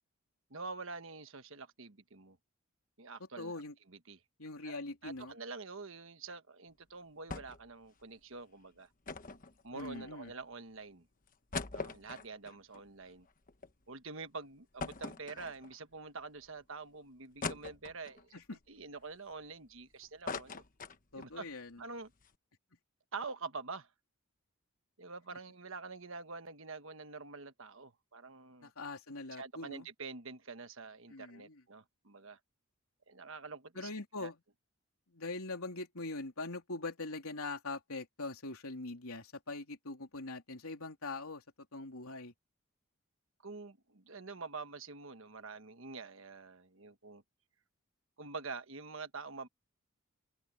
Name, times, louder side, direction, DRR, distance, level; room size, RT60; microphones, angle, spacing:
voice 1, 0.5-2.4 3.0-3.5 3.9-4.2 4.6-4.8 5.0-8.9 9.6-11.1 11.7-13.3 13.9-20.6 21.2-21.5 21.8-22.1 23.1-23.9 25.0-28.7 29.4-32.4 33.1-33.9 34.2-34.3 43.4-47.2 48.2-49.5, right 4 dB, 65° right, 1.3 m, -46 dB
voice 2, 3.4-3.7 4.4-5.4 9.7-10.3 18.3-18.6 21.1-21.8 28.6-29.9 31.1-31.6 33.7-34.4 35.1-41.4 41.7-42.3, left 3 dB, 85° left, 3.4 m, -42 dB
sound 1, 7.3-7.7 8.0-8.1 9.1-10.3 10.9-11.0 11.3-13.7 14.1-14.2 14.8-15.9 16.5-16.6 17.4-18.3 18.8-19.8 20.0-21.4 21.7-21.8 22.1-22.3, left 4 dB, 40° left, 1.2 m, -42 dB
open air
head